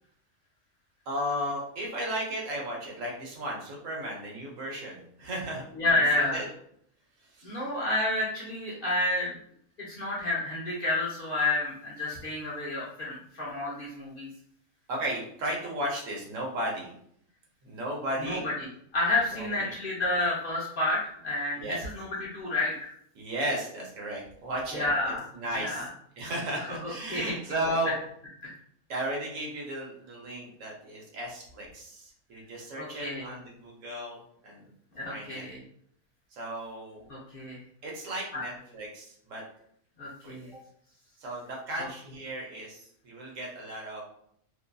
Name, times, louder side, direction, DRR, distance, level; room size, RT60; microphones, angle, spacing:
voice 1, 1.1-5.7 6.0-6.5 7.2-7.6 14.9-16.9 17.6-18.4 19.3-19.7 21.6-21.8 23.1-24.8 25.3-25.8 26.2-27.9 28.9-34.7 35.1-35.4 36.3-37.1 37.8-39.4 40.2-40.4 41.2-44.0, right 1 dB, 70° right, -2 dB, 1.0 m, -35 dB
voice 2, 5.8-6.4 7.4-9.4 9.9-14.3 18.2-18.5 18.9-22.9 24.7-25.2 25.6-25.9 26.6-27.4 32.8-33.3 35.0-35.6 37.1-37.6 38.3-38.4 40.0-40.5, left 2 dB, 55° left, -6 dB, 0.7 m, -30 dB
2.6 x 2.5 x 2.2 m, 0.68 s
omnidirectional pair, 1.4 m